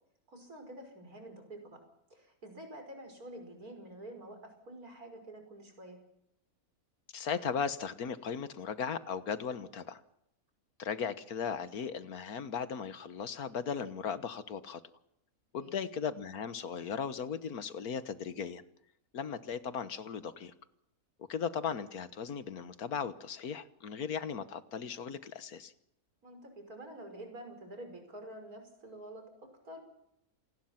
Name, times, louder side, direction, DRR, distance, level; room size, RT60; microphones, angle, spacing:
voice 1, 0.3-1.8 2.1-6.0 15.6-15.8 26.2-29.8, right 1 dB, 75° right, 5 dB, 6.1 m, -48 dB
voice 2, 7.1-10.0 10.8-14.8 15.5-18.6 19.1-20.5 21.3-25.7, left 6 dB, 85° left, 12 dB, 1.7 m, -37 dB
27.5 x 19.5 x 5.9 m, 0.78 s
omnidirectional pair, 1.6 m